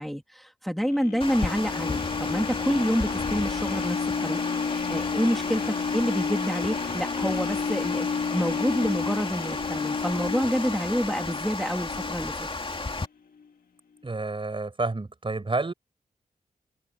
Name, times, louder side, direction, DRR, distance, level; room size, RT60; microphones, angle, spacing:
voice 1, 0.0-4.4 4.9-5.6 5.9-12.5, equal, ahead, 3.0 m, -28 dB
sound 1, 0.8-12.9 13.4-13.5, left 5 dB, 80° left, 1.9 m, -32 dB
Water, 1.2-13.1, left 3 dB, 35° left, 2.9 m, -33 dB
voice 2, 14.0-15.7, right 3 dB, 35° right, 5.9 m, -29 dB
cardioid pair, 65°, 15 cm